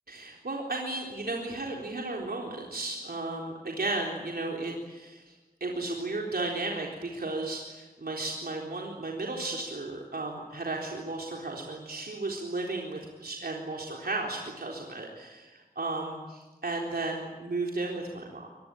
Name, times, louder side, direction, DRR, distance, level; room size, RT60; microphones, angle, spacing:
voice 1, 0.1-18.5, right 2 dB, 80° right, -1 dB, 3.9 m, -34 dB
25.0 x 21.5 x 9.0 m, 1.3 s
wide cardioid pair, 60°, 16 cm